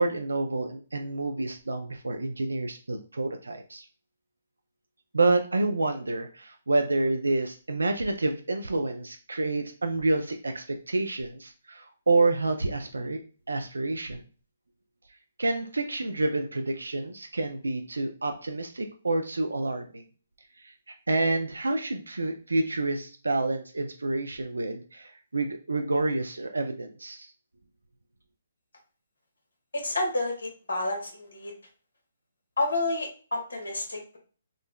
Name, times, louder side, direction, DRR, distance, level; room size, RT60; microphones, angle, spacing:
voice 1, 0.0-3.9 5.1-13.2 13.5-14.2 15.4-20.0 20.6-27.3, right 2 dB, 90° right, 6 dB, 0.3 m, -28 dB
voice 2, 29.7-31.5 32.6-34.2, left 2 dB, 80° left, 1 dB, 1.2 m, -30 dB
3.7 x 2.0 x 2.2 m, 0.38 s
hypercardioid pair, 140°, 0 cm